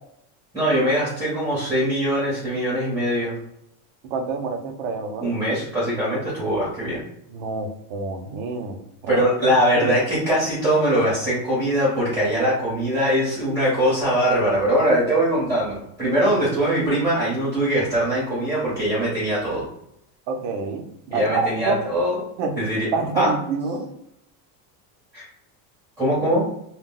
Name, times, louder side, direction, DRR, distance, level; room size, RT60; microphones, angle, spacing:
voice 1, 0.5-3.4 5.2-7.0 9.1-19.7 21.1-22.2 22.6-22.9 23.1-23.3 25.1-25.3 26.0-26.5, equal, 5° right, -8 dB, 0.7 m, -22 dB
voice 2, 4.1-5.3 7.3-9.5 9.8-9.9 20.3-21.9 22.4-22.6 22.9-23.9, right 4 dB, 50° right, 5 dB, 0.5 m, -27 dB
2.2 x 2.0 x 3.7 m, 0.78 s
cardioid pair, 160°, 44 cm